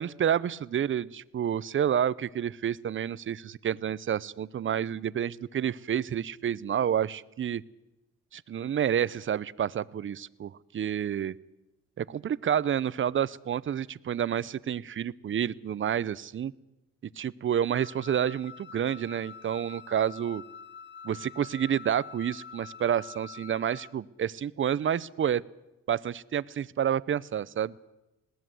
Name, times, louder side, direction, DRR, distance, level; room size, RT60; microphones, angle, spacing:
voice 1, 0.0-7.6 8.3-11.3 12.0-16.5 17.2-20.4 21.0-25.4 25.9-27.7, right 9 dB, 40° right, 20 dB, 0.7 m, -29 dB
Wind instrument woodwind instrument, 17.7-24.0, left 6 dB, 35° left, 0.8 m, -46 dB
20.5 x 17.5 x 7.8 m, 0.94 s
cardioid pair, 90°, 30 cm